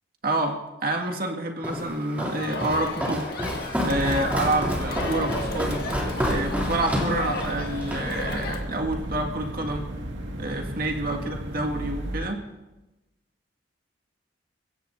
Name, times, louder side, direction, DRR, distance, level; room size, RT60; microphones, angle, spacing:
voice 1, 0.2-3.3 3.8-5.9 6.2-9.9 10.4-12.4, right 2 dB, 55° right, 2 dB, 2.1 m, -28 dB
Walk footsteps, 1.6-8.1, equal, 10° right, 3.0 m, -29 dB
Crowd, 2.4-8.6, left 2 dB, 55° left, 1.9 m, -34 dB
sound 1, 3.9-12.2, equal, 85° right, 2.1 m, -34 dB
30.0 x 16.5 x 2.7 m, 1.0 s
head